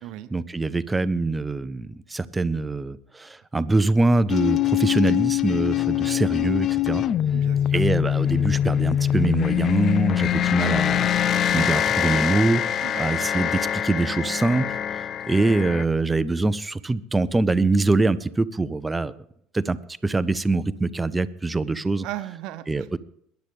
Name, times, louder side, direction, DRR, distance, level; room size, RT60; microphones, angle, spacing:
voice 1, 0.3-7.0 7.7-11.1 11.5-12.6 13.0-14.8 15.2-19.1 19.5-19.8 20.0-22.1 22.7-23.0, right 3 dB, 15° right, 15 dB, 0.7 m, -23 dB
sound 1, 4.3-15.9, left 11 dB, 45° left, 0.4 m, -23 dB
voice 2, 7.3-7.8 12.8-13.3 22.0-23.0, right 14 dB, 60° right, 12 dB, 0.9 m, -37 dB
21.5 x 10.5 x 3.6 m, 0.69 s
hypercardioid pair, 65°, 0 cm